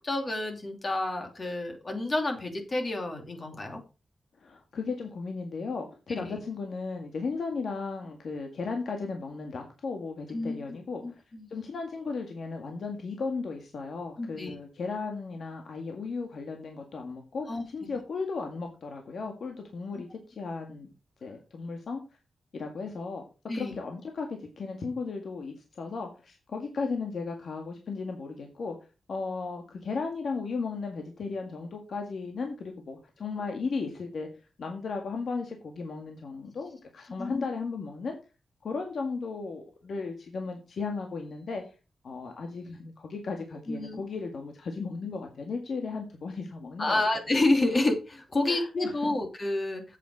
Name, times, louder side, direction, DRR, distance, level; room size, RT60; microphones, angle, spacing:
voice 1, 0.0-3.8 6.1-6.4 10.3-10.5 11.0-11.5 14.2-14.5 17.5-18.0 19.9-20.0 23.5-23.8 37.2-37.4 43.7-44.0 46.8-50.0, left 2 dB, 35° left, 4 dB, 2.8 m, -29 dB
voice 2, 4.4-11.2 11.5-20.9 21.2-22.0 22.5-23.2 23.5-28.8 29.1-34.3 34.6-38.2 38.6-41.6 42.0-47.0 48.5-48.7, left 4 dB, 65° left, 3 dB, 1.9 m, -35 dB
8.5 x 8.4 x 4.8 m, 0.31 s
wide cardioid pair, 130°, 0 cm